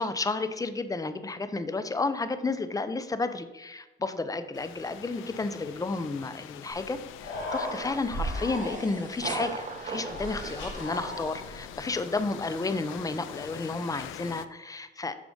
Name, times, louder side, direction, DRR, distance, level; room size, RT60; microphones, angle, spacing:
voice 1, 0.0-15.2, left 3 dB, 15° left, 11 dB, 0.6 m, -32 dB
sound 1, 4.5-14.5, left 11 dB, 90° left, 0.5 m, -45 dB
Human voice, 6.8-6.9 7.1-9.2 10.1-11.8, left 1 dB, 65° left, 2.7 m, -36 dB
sound 2, 7.6-11.7, right 4 dB, 40° right, 1.1 m, -40 dB
7.0 x 5.0 x 5.4 m, 1.1 s
cardioid pair, 90°, 20 cm